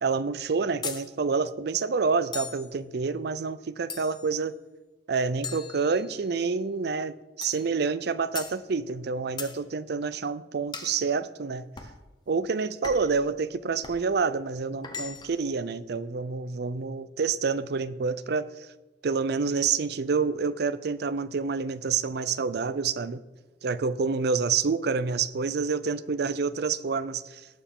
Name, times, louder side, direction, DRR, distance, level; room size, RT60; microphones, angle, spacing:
voice 1, 0.0-4.5 5.1-11.7 12.3-18.5 19.0-23.2 23.6-27.4, right 5 dB, 65° right, 15 dB, 0.5 m, -28 dB
sound 1, 0.8-1.1 2.3-2.7 3.9-4.3 5.4-6.3 7.4-7.7 8.3-8.6 9.4-9.6 10.7-11.0 11.8-12.0 12.8-13.2 13.8-14.0 14.8-15.4, left 5 dB, 25° left, 1.1 m, -38 dB
18.0 x 6.9 x 3.7 m, 1.2 s
head